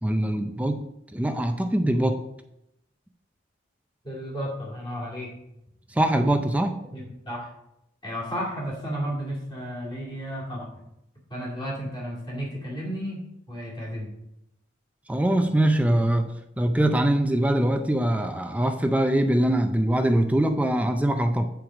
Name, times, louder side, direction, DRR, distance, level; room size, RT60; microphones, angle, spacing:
voice 1, 0.0-0.8 1.1-2.2 5.9-6.8 15.1-16.3 16.6-21.5, right 1 dB, 5° right, 6 dB, 0.4 m, -23 dB
voice 2, 4.0-5.3 6.9-7.5 8.0-10.7 11.3-14.1, equal, 25° left, -5 dB, 2.3 m, -33 dB
8.7 x 4.6 x 4.9 m, 0.83 s
head